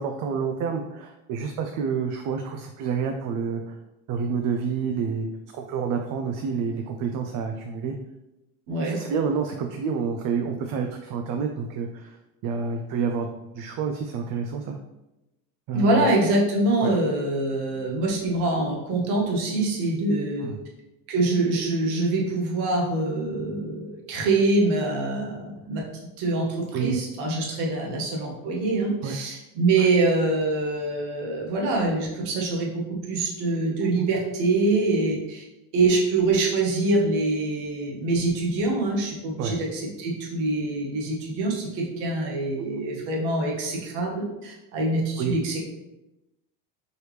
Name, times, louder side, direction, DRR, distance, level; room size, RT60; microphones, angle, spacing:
voice 1, 0.0-3.8 4.1-5.3 5.5-8.0 8.8-12.2 12.4-13.3 13.5-14.8 15.7-16.0 16.8-16.9 20.4-20.6 26.7-27.0 29.0-29.2 29.8-29.9 34.0-34.1 39.4-39.5 42.6-42.7 45.2-45.4, right 6 dB, 50° right, 5 dB, 0.4 m, -28 dB
voice 2, 8.7-9.0 15.7-20.5 21.1-25.8 26.2-35.4 35.7-45.6, right 2 dB, 70° right, -1 dB, 1.4 m, -24 dB
4.6 x 3.3 x 3.2 m, 0.95 s
supercardioid pair, 120°, 43 cm